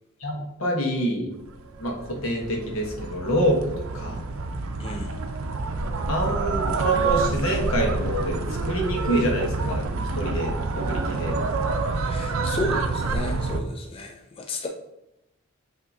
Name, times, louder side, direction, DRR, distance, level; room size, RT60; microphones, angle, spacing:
voice 1, 0.2-1.3 1.8-4.2 6.1-9.9 10.1-11.4, equal, 85° left, 0 dB, 1.0 m, -26 dB
sound 1, 1.6-13.6, right 3 dB, 90° right, 0.5 m, -27 dB
voice 2, 4.8-5.1 12.1-14.7, left 2 dB, 25° left, 3 dB, 0.3 m, -33 dB
5.6 x 2.8 x 2.6 m, 0.87 s
head